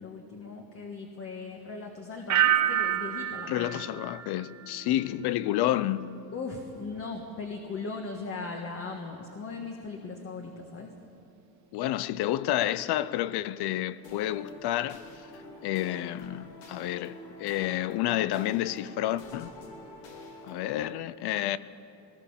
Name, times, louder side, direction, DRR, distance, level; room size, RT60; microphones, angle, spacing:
voice 1, 0.0-3.7 6.3-11.0, left 4 dB, 30° left, 1.5 m, -38 dB
sound 1, 2.3-5.1 5.5-5.9, right 12 dB, 40° right, 0.8 m, -29 dB
voice 2, 3.5-6.1 11.7-15.0 15.6-19.5 20.4-21.6, left 13 dB, 65° left, 0.7 m, -30 dB
sound 2, 14.0-20.9, left 1 dB, 90° left, 3.9 m, -47 dB
21.0 x 19.0 x 7.2 m
cardioid pair, 160°, 43 cm